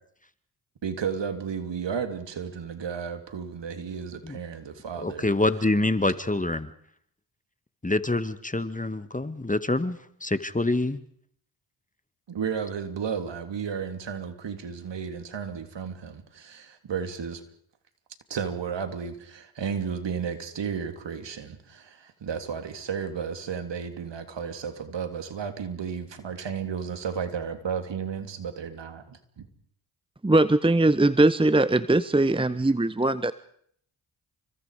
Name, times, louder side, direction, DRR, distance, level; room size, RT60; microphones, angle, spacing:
voice 1, 0.8-5.3 12.3-17.4 18.3-29.5, right 6 dB, 60° right, 8 dB, 3.4 m, -33 dB
voice 2, 5.0-6.7 7.8-11.0, left 2 dB, 15° left, 12 dB, 1.9 m, -26 dB
voice 3, 30.2-33.3, right 2 dB, 10° right, 15 dB, 1.0 m, -21 dB
29.5 x 25.0 x 5.1 m, 0.65 s
supercardioid pair, 45°, 48 cm